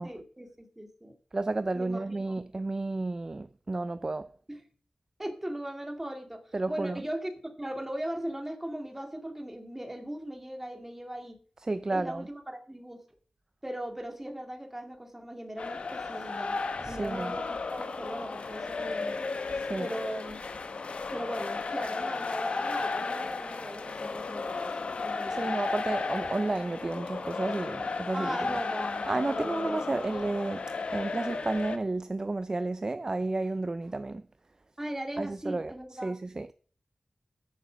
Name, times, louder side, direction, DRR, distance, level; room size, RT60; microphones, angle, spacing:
voice 1, 0.0-1.2 1.7-2.0 4.5-4.6 5.2-11.4 11.9-13.0 13.6-16.6 16.9-19.2 19.8-20.4 21.1-25.6 28.1-29.8 34.8-36.2, right 1 dB, 15° right, 2.3 m, -38 dB
voice 2, 1.3-4.3 6.5-7.0 11.7-12.2 16.8-17.3 19.5-19.9 25.4-28.6 29.0-30.6 30.9-34.2 35.2-35.7 36.0-36.5, right 2 dB, 35° right, 0.5 m, -32 dB
sound 1, 15.6-31.8, left 4 dB, 80° left, 1.2 m, -34 dB
14.0 x 7.0 x 5.2 m
wide cardioid pair, 105°, 2 cm